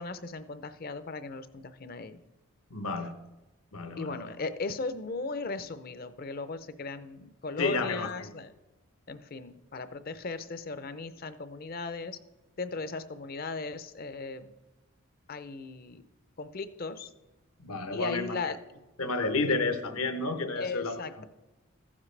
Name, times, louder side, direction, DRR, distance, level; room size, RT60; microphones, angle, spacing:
voice 1, 0.0-2.2 4.0-8.5 9.1-12.2 12.6-14.5 15.3-16.0 16.4-17.1 17.9-18.6 20.6-21.2, left 3 dB, 40° left, 12 dB, 0.5 m, -37 dB
voice 2, 2.7-3.1 3.7-4.2 7.6-8.1 17.6-18.4 19.0-21.0, left 3 dB, 75° left, 8 dB, 0.9 m, -30 dB
15.0 x 7.3 x 3.3 m, 1.1 s
head